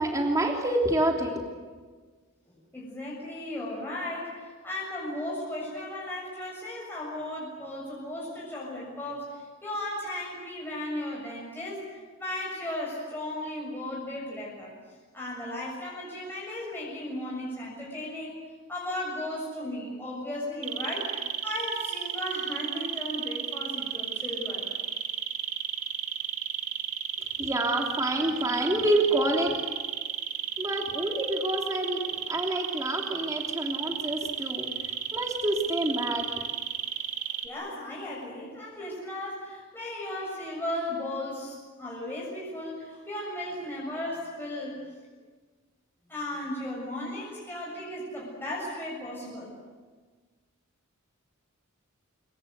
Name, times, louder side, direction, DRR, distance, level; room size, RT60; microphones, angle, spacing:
voice 1, 0.0-1.4 27.4-29.5 30.6-34.7 35.1-36.3, right 1 dB, 15° right, 0 dB, 3.2 m, -27 dB
voice 2, 2.5-11.8 12.2-14.7 15.1-18.4 18.7-24.7 37.4-44.8 46.1-49.5, left 1 dB, 10° left, -5 dB, 7.2 m, -36 dB
sound 1, 20.6-37.5, right 9 dB, 75° right, 2.6 m, -33 dB
26.5 x 23.5 x 8.3 m, 1.4 s
head